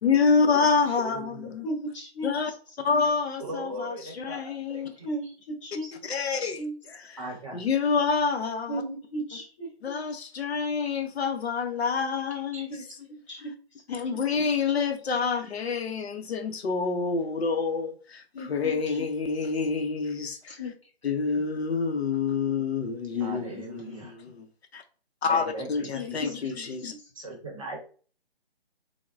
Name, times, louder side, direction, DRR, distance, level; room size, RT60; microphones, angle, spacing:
voice 1, 0.0-1.7 2.2-2.5 2.8-4.9 5.9-7.2 7.5-8.8 9.8-12.7 13.9-20.6 21.0-24.5 24.7-24.8 25.2-26.9, left 5 dB, 75° left, 0.6 m, -27 dB
voice 2, 1.0-1.5 3.4-5.3 5.8-5.9 7.2-7.6 12.3-12.9 23.2-24.2 25.3-26.3 27.1-27.8, right 1 dB, 30° right, 0.7 m, -39 dB
voice 3, 1.6-2.3 5.0-5.9 6.4-6.7 8.7-9.7 12.7-12.8 13.3-13.5 14.1-14.2 18.3-19.0 20.6-20.8 23.1-23.6 25.9-26.2 26.5-26.7, equal, 30° left, 0.9 m, -35 dB
3.6 x 2.0 x 2.3 m
hypercardioid pair, 165°, 32 cm